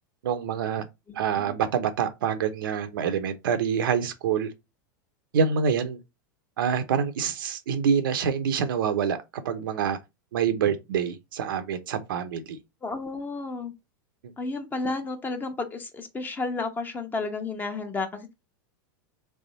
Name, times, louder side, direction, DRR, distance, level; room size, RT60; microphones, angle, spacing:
voice 1, 0.2-0.9 1.1-4.5 5.3-6.0 6.6-10.0 10.3-12.6, right 7 dB, 85° right, 0.9 m, -26 dB
voice 2, 1.1-1.5 12.8-13.7 14.4-18.3, left 3 dB, 15° left, 0.9 m, -32 dB
3.6 x 3.4 x 4.1 m
supercardioid pair, 130°, 11 cm